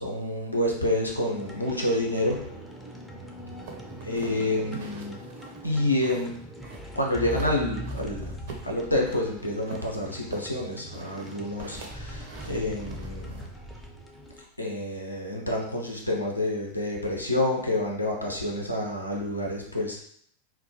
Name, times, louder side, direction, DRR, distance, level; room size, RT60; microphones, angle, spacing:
voice 1, 0.0-2.4 4.0-5.2 5.6-6.4 7.0-13.5 14.6-20.0, left 1 dB, 85° left, -1 dB, 0.5 m, -28 dB
sound 1, 1.3-14.4, equal, ahead, 0.3 m, -41 dB
sound 2, 3.7-6.3 6.6-7.5 7.8-9.2 9.7-13.5, right 4 dB, 55° right, 0.4 m, -44 dB
2.3 x 2.0 x 2.6 m, 0.65 s
figure-of-eight pair, 90°, 0 cm